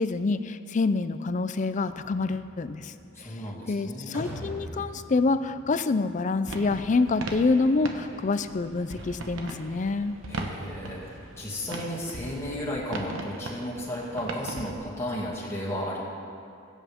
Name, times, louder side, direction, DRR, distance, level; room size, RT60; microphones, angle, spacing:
voice 1, 0.0-2.9 3.2-3.3 3.7-10.2, left 3 dB, 40° left, 12 dB, 0.4 m, -26 dB
sound 1, 1.8-6.8, equal, 10° right, 1.8 m, -43 dB
voice 2, 3.1-4.2 10.3-16.0, left 1 dB, 15° left, -6 dB, 2.2 m, -34 dB
sound 2, 6.4-14.7, right 2 dB, 90° right, 1.1 m, -39 dB
21.0 x 8.2 x 3.6 m, 2.5 s
head